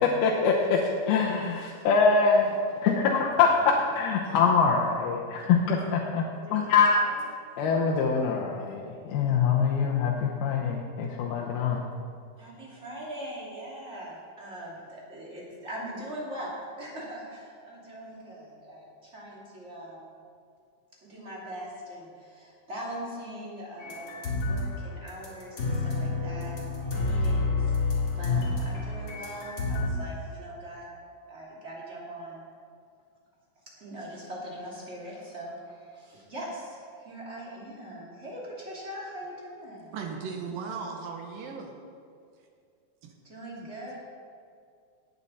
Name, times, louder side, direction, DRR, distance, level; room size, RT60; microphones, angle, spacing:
voice 1, 0.0-7.0 7.6-11.8, left 5 dB, 80° left, -2 dB, 2.8 m, -24 dB
voice 2, 6.3-7.2 12.4-20.1 21.0-27.8 28.1-30.9 31.3-32.4 33.8-39.9 43.2-44.0, right 1 dB, 20° right, -5 dB, 2.5 m, -41 dB
sound 1, 23.8-24.7 25.1-29.9, left 3 dB, 40° left, 2.9 m, -29 dB
voice 3, 39.9-41.8 43.0-43.1 43.6-43.7, right 5 dB, 75° right, 2 dB, 2.7 m, -37 dB
18.0 x 8.7 x 4.2 m, 2.3 s
omnidirectional pair, 4.3 m